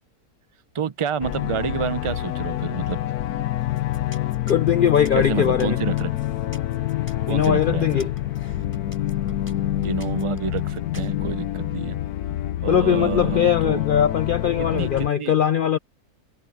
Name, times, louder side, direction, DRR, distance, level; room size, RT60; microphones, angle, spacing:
voice 1, 0.7-3.1 5.1-6.2 7.2-8.1 9.8-12.0 12.6-13.8 14.7-15.3, right 6 dB, 50° right, 0.3 m, -28 dB
sound 1, 1.2-15.1, left 13 dB, 85° left, 1.2 m, -26 dB
sound 2, 3.6-11.1, left 1 dB, 20° left, 5.0 m, -47 dB
voice 2, 4.5-5.8 7.3-8.1 12.7-15.8, left 9 dB, 70° left, 0.5 m, -20 dB
sound 3, 6.2-10.1, equal, ahead, 6.4 m, -59 dB
omnidirectional pair, 1.6 m